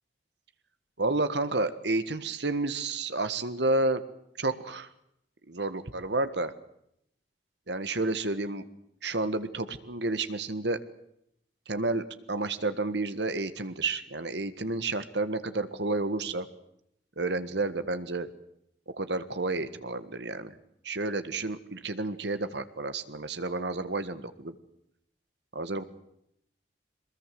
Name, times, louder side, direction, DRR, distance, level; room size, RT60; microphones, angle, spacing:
voice 1, 1.0-4.0 4.4-4.9 5.5-6.5 7.7-8.6 9.0-10.8 11.7-16.5 17.2-18.3 18.9-20.5 20.8-24.5 25.5-25.8, right 2 dB, 75° right, 11 dB, 1.7 m, -30 dB
23.5 x 21.0 x 7.7 m, 0.77 s
head